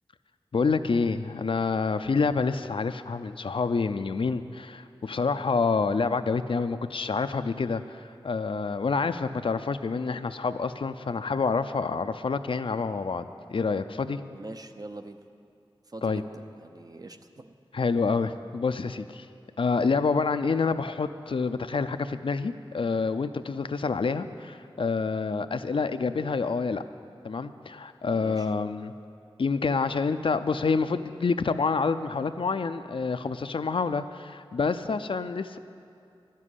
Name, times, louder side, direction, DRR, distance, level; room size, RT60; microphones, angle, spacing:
voice 1, 0.5-8.0 8.2-14.2 16.0-16.2 17.7-19.3 19.6-26.8 27.2-28.9 29.4-35.6, left 4 dB, 65° left, 10 dB, 0.5 m, -27 dB
voice 2, 14.3-15.2 15.9-17.5 28.1-28.5 34.8-35.0, right 2 dB, 40° right, 7 dB, 0.7 m, -43 dB
12.0 x 7.6 x 9.8 m, 2.5 s
wide cardioid pair, 70°, 9 cm